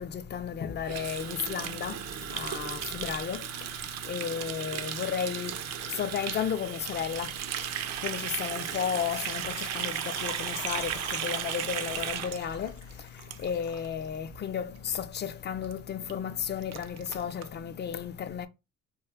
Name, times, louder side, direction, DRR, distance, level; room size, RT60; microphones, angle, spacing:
voice 1, 0.0-2.0 2.3-3.4 4.1-5.5 6.0-7.3 8.0-10.9 11.2-12.7 13.4-18.5, left 8 dB, 35° left, 0.4 m, -33 dB
Water tap faucet, 0.8-13.9 14.1-14.4 14.7-15.0 15.3-15.4 15.6-15.7 16.1-16.2 16.4-17.5, right 10 dB, 60° right, 0.4 m, -36 dB
Water / Liquid, 8.5-14.1 14.4-14.5 14.9-15.0, left 6 dB, 80° left, 0.7 m, -47 dB
2.4 x 2.2 x 3.5 m
cardioid pair, 90°, 30 cm